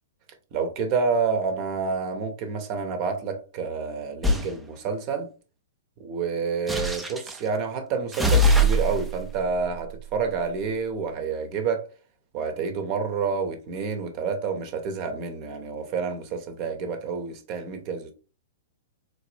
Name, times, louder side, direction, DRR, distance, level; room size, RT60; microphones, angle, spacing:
voice 1, 0.5-5.3 6.0-11.8 12.3-18.1, right 5 dB, 40° right, 1.0 m, -28 dB
sound 1, 4.2-4.5 6.7-7.4 8.1-10.8, equal, 5° right, 0.6 m, -24 dB
4.1 x 2.9 x 3.3 m
figure-of-eight pair, 110°, 0 cm